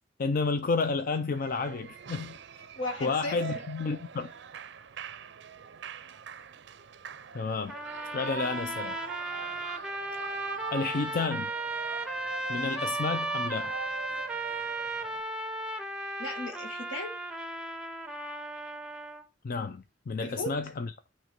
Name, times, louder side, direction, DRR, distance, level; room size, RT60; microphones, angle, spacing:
voice 1, 0.2-2.3 3.0-4.3 7.3-7.7 8.1-9.0 10.7-11.5 12.5-13.7 19.4-20.9, left 4 dB, 50° left, 0.4 m, -31 dB
Shout / Cheering, 1.3-15.2, right 6 dB, 65° right, 0.5 m, -43 dB
voice 2, 2.8-3.6 16.2-17.2 20.2-20.6, left 1 dB, 80° left, 1.8 m, -36 dB
sound 1, 7.7-19.2, right 2 dB, 5° right, 0.6 m, -35 dB
9.3 x 3.1 x 5.1 m
head